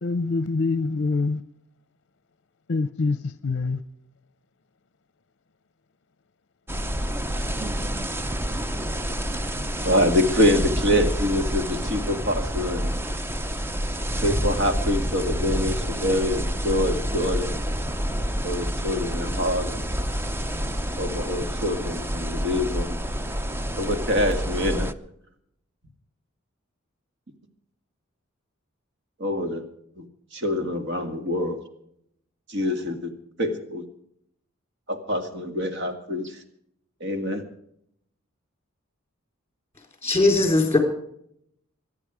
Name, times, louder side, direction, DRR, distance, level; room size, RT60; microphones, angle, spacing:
voice 1, 0.0-1.4 2.7-3.8, left 3 dB, 55° left, 14 dB, 0.6 m, -25 dB
sound 1, 6.7-24.9, equal, 10° right, 0.5 m, -28 dB
voice 2, 9.8-12.9 14.2-17.6 18.4-19.8 21.0-23.0 23.8-24.9 29.2-29.6 30.0-30.1 30.3-31.6 32.5-33.1 33.4-33.8 34.9-36.4 37.0-37.4, left 1 dB, 60° right, 7 dB, 2.1 m, -25 dB
voice 3, 40.0-40.8, left 2 dB, 15° left, 5 dB, 3.9 m, -19 dB
24.5 x 9.9 x 4.9 m, 0.71 s
head